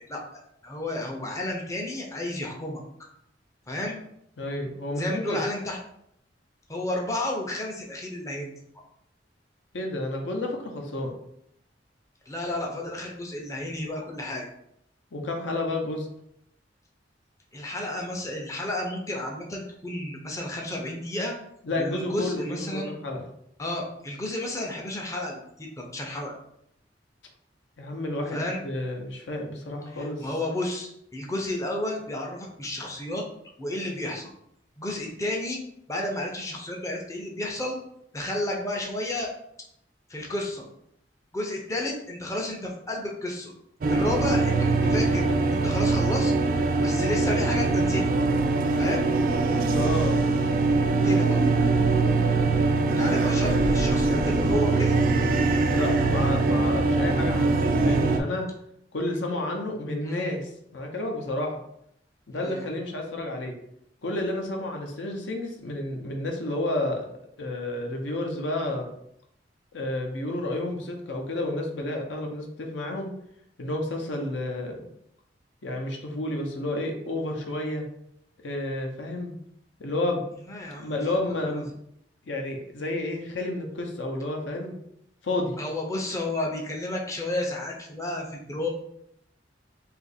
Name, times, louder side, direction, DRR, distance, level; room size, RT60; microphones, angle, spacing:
voice 1, 0.0-2.8 3.7-4.0 5.0-5.8 6.7-8.5 12.3-14.5 17.5-21.3 21.8-22.9 23.6-26.3 28.3-28.7 29.9-33.2 33.6-34.3 34.8-35.6 35.9-37.8 38.1-39.3 40.1-40.7 41.3-43.5 43.9-46.3 46.8-48.0 48.8-49.1 51.0-51.4 53.0-55.0 60.0-60.4 62.4-62.7 80.4-81.0 81.5-81.6 85.6-88.7, left 1 dB, 20° left, 0 dB, 0.5 m, -32 dB
voice 2, 4.4-5.4 9.7-11.1 15.1-16.1 21.6-23.3 27.8-30.3 49.7-50.2 53.3-53.9 55.7-58.5 58.9-61.6 62.3-63.5 64.0-67.1 67.4-68.9 69.7-73.1 73.6-74.8 75.6-77.9 78.4-79.3 79.8-80.2 80.8-81.7 82.2-84.8 85.2-85.6, left 1 dB, 80° left, 2 dB, 0.7 m, -31 dB
sound 1, 43.8-58.2, right 3 dB, 50° right, 0.3 m, -22 dB
2.8 x 2.5 x 4.0 m, 0.74 s
head